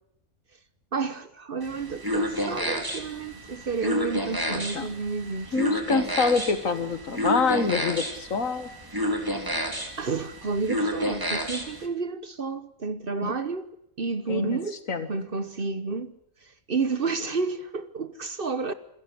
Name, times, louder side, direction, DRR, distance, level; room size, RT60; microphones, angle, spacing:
voice 1, 0.9-5.6 10.0-14.8 15.1-16.1 16.4-18.7, right 4 dB, 45° right, 1.2 m, -30 dB
sound 1, 1.6-11.9, equal, 15° right, 3.0 m, -30 dB
voice 2, 4.5-4.9 5.5-8.7 13.2-13.3 14.3-14.6 14.9-15.1, left 4 dB, 70° left, 2.1 m, -26 dB
27.0 x 13.5 x 9.9 m
omnidirectional pair, 1.4 m